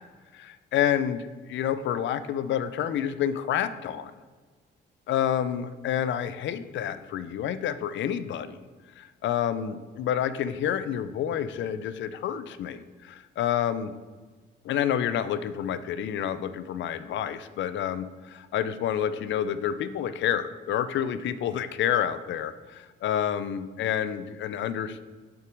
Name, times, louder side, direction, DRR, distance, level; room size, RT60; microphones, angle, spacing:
voice 1, 0.3-4.1 5.1-8.6 9.0-13.9 14.6-25.0, left 9 dB, 70° left, 13 dB, 0.5 m, -29 dB
6.5 x 4.6 x 5.1 m, 1.4 s
cardioid pair, 90°, 20 cm